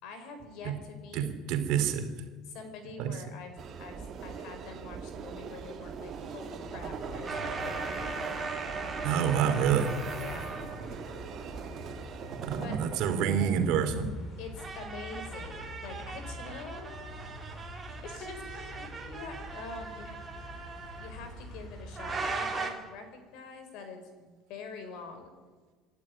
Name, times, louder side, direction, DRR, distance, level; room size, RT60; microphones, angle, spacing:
voice 1, 0.0-1.3 2.5-8.4 10.1-10.5 12.6-12.8 14.4-17.3 18.0-20.2 21.0-25.3, left 4 dB, 55° left, 7 dB, 5.0 m, -45 dB
voice 2, 1.1-2.1 3.0-3.2 9.0-10.0 12.4-14.1, right 8 dB, 60° right, 7 dB, 3.0 m, -27 dB
sound 1, 3.6-13.3, right 6 dB, 30° right, 2.0 m, -42 dB
sound 2, 6.7-22.4, left 1 dB, 30° left, 4.3 m, -46 dB
sound 3, 7.3-11.1 13.0-13.7 14.6-21.1 22.0-22.7, right 4 dB, 15° right, 2.9 m, -38 dB
27.0 x 12.5 x 9.9 m, 1.4 s
cardioid pair, 175°, 0 cm